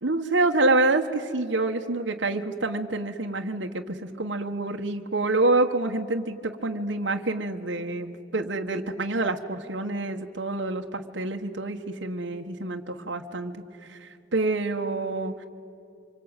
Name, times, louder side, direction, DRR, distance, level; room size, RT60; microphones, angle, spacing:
voice 1, 0.0-13.6 13.9-15.5, right 2 dB, 70° right, 3 dB, 1.4 m, -27 dB
26.5 x 25.0 x 9.1 m, 2.6 s
head